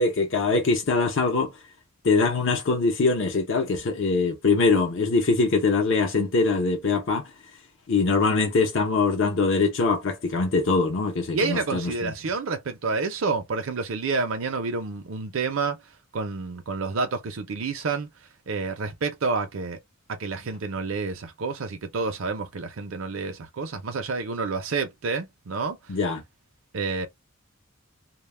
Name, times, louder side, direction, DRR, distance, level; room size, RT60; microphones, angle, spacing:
voice 1, 0.0-1.5 2.0-7.3 7.9-12.1 25.9-26.2, left 4 dB, 65° left, 0.6 m, -23 dB
voice 2, 11.3-15.8 16.1-18.1 18.5-19.8 20.1-25.8 26.7-27.1, right 4 dB, 75° right, 0.6 m, -29 dB
2.2 x 2.0 x 3.2 m
head